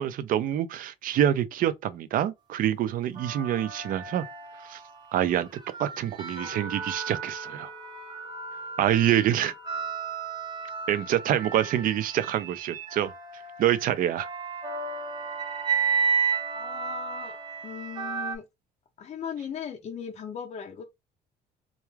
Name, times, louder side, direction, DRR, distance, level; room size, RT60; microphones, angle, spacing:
voice 1, 0.0-4.3 4.6-4.8 5.1-5.5 5.8-7.7 8.8-9.5 10.9-13.1 13.6-14.3, right 11 dB, 55° right, 0.4 m, -26 dB
sound 1, 3.1-5.0 5.5-18.4, right 5 dB, 25° right, 0.7 m, -33 dB
voice 2, 16.5-17.4 17.6-18.5 19.0-20.8, left 7 dB, 40° left, 0.4 m, -37 dB
2.3 x 2.2 x 3.1 m
cardioid pair, 110°, 17 cm